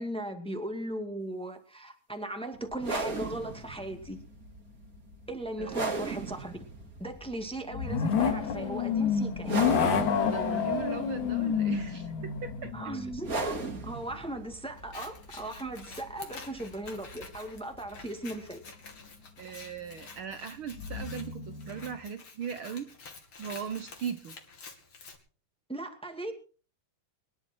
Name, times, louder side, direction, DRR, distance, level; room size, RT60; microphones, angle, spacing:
voice 1, 0.0-4.2 5.3-6.6 7.0-9.6 12.7-18.6 25.7-26.3, right 1 dB, ahead, 5 dB, 1.5 m, -38 dB
sound 1, 2.7-18.0, right 3 dB, 30° right, 2.5 m, -39 dB
sound 2, 2.9-3.6 3.9-4.0 7.7-14.1 19.0-19.1 20.7-22.0, left 6 dB, 70° left, 3.5 m, -30 dB
voice 2, 10.2-12.7 19.4-22.9 23.4-24.4, right 7 dB, 70° right, 10 dB, 1.2 m, -38 dB
Scissors, 14.8-25.2, left 4 dB, 45° left, 3.3 m, -49 dB
25.0 x 11.0 x 4.4 m, 0.39 s
omnidirectional pair, 3.5 m